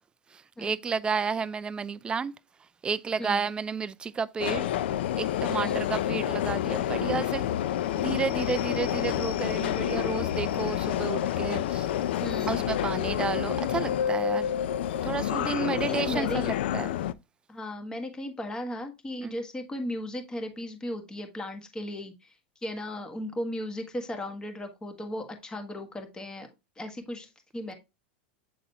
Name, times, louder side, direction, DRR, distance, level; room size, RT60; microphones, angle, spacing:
voice 1, 0.3-2.3 2.8-4.7 5.2-7.5 7.9-11.9 12.5-14.5 15.0-16.9 19.2-19.4, right 5 dB, 15° right, 0.4 m, -31 dB
voice 2, 3.2-3.5 5.6-5.9 12.2-12.6 15.9-16.4 17.5-22.3 22.6-26.5 26.8-27.7, left 1 dB, 15° left, 1.4 m, -36 dB
Subway metro underground, 4.4-17.1, left 11 dB, 75° left, 0.5 m, -28 dB
8.4 x 3.9 x 2.9 m
supercardioid pair, 130°, 6 cm